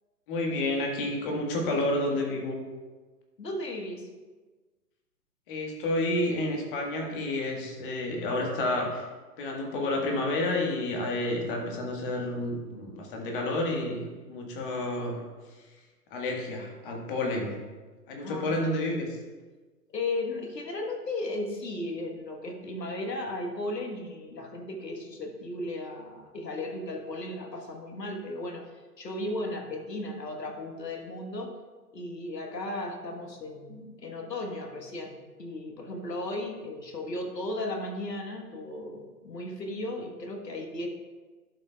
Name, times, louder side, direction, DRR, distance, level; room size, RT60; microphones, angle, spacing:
voice 1, 0.3-2.6 5.5-9.0 9.4-15.3 16.1-17.5 18.1-19.2, left 1 dB, 35° left, 0 dB, 1.5 m, -30 dB
voice 2, 3.4-4.1 18.2-18.6 19.9-31.5 31.9-40.9, left 2 dB, 85° left, 2 dB, 1.4 m, -35 dB
11.5 x 5.5 x 2.3 m, 1.3 s
figure-of-eight pair, 130°, 48 cm